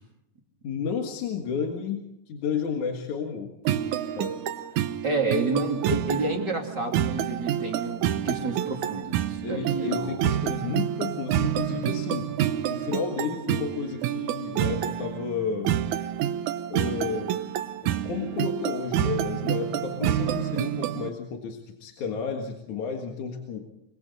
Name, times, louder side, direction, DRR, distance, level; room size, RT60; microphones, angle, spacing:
voice 1, 0.6-3.5 4.2-4.3 9.4-12.3 12.7-15.7 16.7-17.3 17.8-23.6, left 6 dB, 60° left, 2 dB, 3.0 m, -32 dB
sound 1, 3.6-21.1, right 11 dB, 70° right, 2.0 m, -28 dB
voice 2, 4.8-10.2, right 2 dB, 30° right, 2 dB, 3.1 m, -29 dB
27.0 x 24.0 x 4.1 m, 0.82 s
omnidirectional pair, 4.0 m